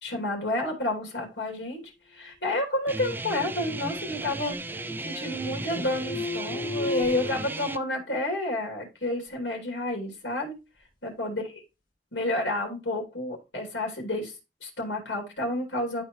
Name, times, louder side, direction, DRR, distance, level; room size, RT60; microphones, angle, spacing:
voice 1, 0.0-1.8 2.1-10.5 11.0-11.6 12.1-14.3 14.6-16.0, left 1 dB, 90° left, 2.6 m, -30 dB
Guitar, 2.9-7.8, right 2 dB, 10° right, 0.4 m, -35 dB
sound 1, 4.0-4.2 4.5-5.4 5.7-7.3, left 4 dB, 55° left, 2.3 m, -36 dB
11.0 x 4.5 x 3.1 m
head